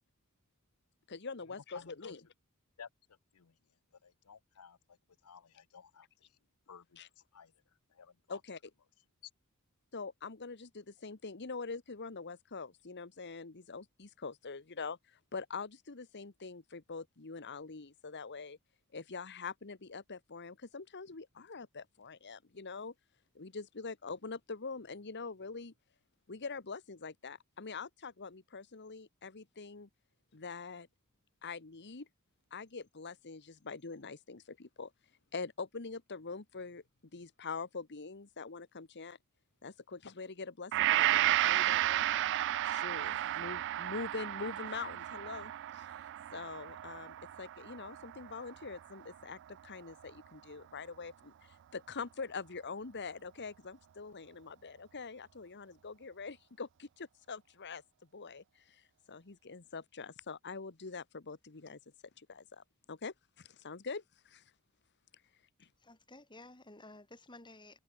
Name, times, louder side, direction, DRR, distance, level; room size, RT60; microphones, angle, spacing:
voice 1, 1.1-2.3 7.0-7.1 8.3-8.7 9.9-18.6 18.9-22.9 23.3-25.7 26.3-29.9 30.3-30.9 31.4-32.1 32.5-34.9 35.3-36.8 37.1-39.2 39.6-42.3 42.6-46.0 46.3-57.8 58.1-58.8 59.1-61.8 62.2-64.4 65.6-65.7, left 4 dB, 55° left, 1.3 m, -44 dB
voice 2, 1.7-2.1 2.8-2.9 3.3-3.5 4.0-4.8 5.2-6.1 6.7-7.0 7.3-7.5 8.0-8.4, left 6 dB, 85° left, 0.7 m, -53 dB
Gong, 40.7-49.0 49.5-49.6, right 14 dB, 55° right, 0.3 m, -33 dB
voice 3, 65.8-67.8, left 2 dB, 20° left, 6.4 m, -54 dB
head